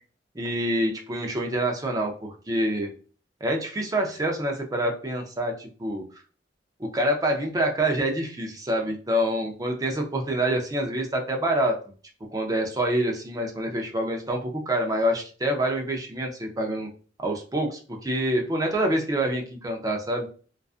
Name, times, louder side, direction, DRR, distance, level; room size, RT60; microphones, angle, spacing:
voice 1, 0.4-2.9 3.4-6.0 6.8-11.8 12.3-16.9 17.2-20.3, right 1 dB, 20° right, 1 dB, 0.5 m, -26 dB
2.4 x 2.3 x 2.4 m, 0.39 s
head